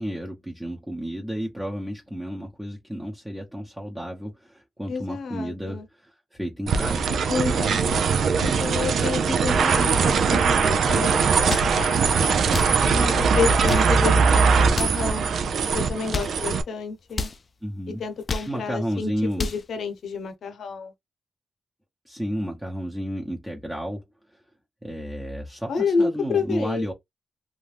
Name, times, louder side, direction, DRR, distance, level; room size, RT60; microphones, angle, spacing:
voice 1, 0.0-7.1 17.6-18.0 18.5-19.5 22.1-24.0 24.8-26.9, equal, 10° right, 0.9 m, -32 dB
voice 2, 4.9-5.9 7.3-7.9 8.4-12.0 12.9-15.3 15.7-17.3 18.0-20.9 25.7-26.9, left 5 dB, 80° left, 0.8 m, -29 dB
sound 1, 6.7-16.6, right 5 dB, 80° right, 0.5 m, -21 dB
sound 2, 11.3-11.8 12.4-12.8 13.5-14.0 14.7-15.1 15.9-16.4 17.1-17.4 18.1-18.6 19.1-19.7, left 4 dB, 50° left, 0.4 m, -31 dB
2.6 x 2.3 x 3.3 m
cardioid pair, 65°, 0 cm